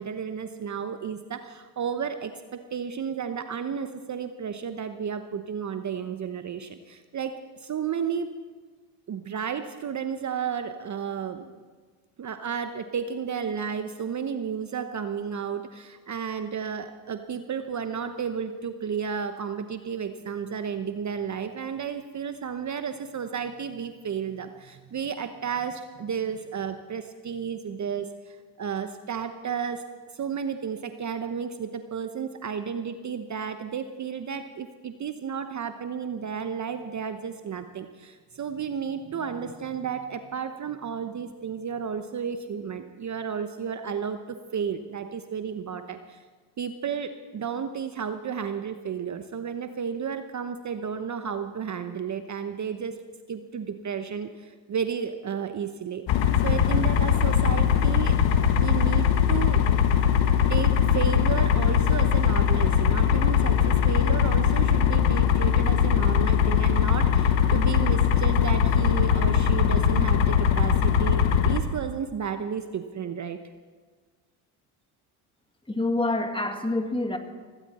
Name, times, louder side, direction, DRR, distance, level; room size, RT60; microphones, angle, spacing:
voice 1, 0.0-8.3 9.1-11.5 12.2-29.9 30.1-46.2 46.6-53.0 53.3-58.2 58.6-59.7 60.5-73.4, right 7 dB, 35° right, 8 dB, 0.9 m, -32 dB
sound 1, 56.1-71.6, left 8 dB, 65° left, 1.4 m, -21 dB
voice 2, 75.7-77.2, left 2 dB, 10° left, 6 dB, 1.8 m, -26 dB
17.0 x 16.5 x 4.3 m, 1.5 s
supercardioid pair, 70°, 49 cm